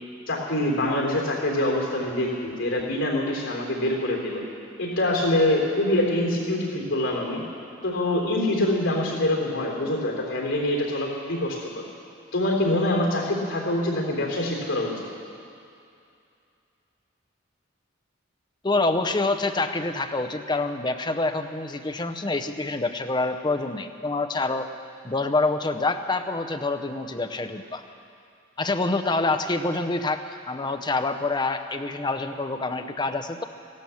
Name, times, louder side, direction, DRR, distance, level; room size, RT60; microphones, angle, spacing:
voice 1, 0.3-4.4 4.8-7.4 7.8-11.6 12.3-14.9, left 1 dB, 80° left, -1 dB, 3.4 m, -25 dB
voice 2, 18.6-24.7 25.0-27.8 28.6-30.2 30.5-33.4, left 3 dB, 20° left, 8 dB, 0.6 m, -26 dB
15.5 x 12.0 x 7.1 m, 2.5 s
head